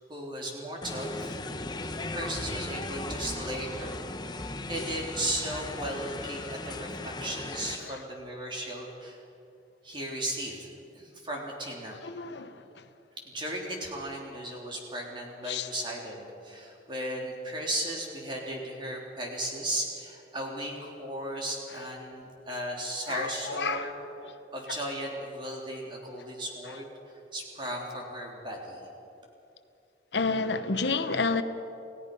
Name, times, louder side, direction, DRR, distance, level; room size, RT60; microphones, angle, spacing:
voice 1, 0.1-1.4 2.1-9.2 9.8-12.0 13.3-23.9 24.5-26.9 27.3-28.8, right 1 dB, 25° right, -1 dB, 3.5 m, -36 dB
sound 1, 0.8-7.8, left 2 dB, 25° left, 1.0 m, -37 dB
voice 2, 12.0-12.6 15.5-15.7 23.1-23.9 24.2-24.4 30.1-31.4, left 4 dB, 75° left, 10 dB, 1.0 m, -30 dB
28.5 x 16.5 x 5.5 m, 2.7 s
head